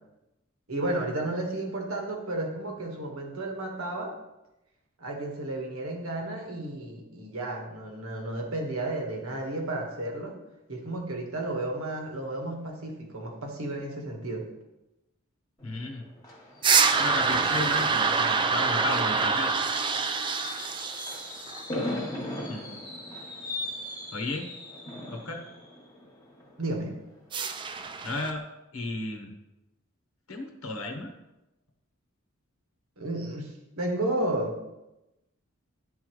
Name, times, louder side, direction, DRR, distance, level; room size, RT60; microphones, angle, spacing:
voice 1, 0.7-4.2 5.0-10.4 10.7-14.5 26.6-26.9 33.0-34.6, right 1 dB, 75° right, 1 dB, 1.3 m, -32 dB
voice 2, 15.6-16.1 16.9-19.6 22.5-22.7 24.1-24.5 25.1-25.5 28.0-28.5 28.7-29.3 30.3-31.1, left 3 dB, 70° left, 3 dB, 0.9 m, -34 dB
Fireworks, 15.6-27.3 27.7-27.9 28.2-28.3, left 1 dB, 15° left, 1.1 m, -39 dB
sound 1, 16.6-21.6 27.3-28.3, right 5 dB, 20° right, 0.3 m, -26 dB
11.0 x 3.8 x 3.1 m, 0.96 s
head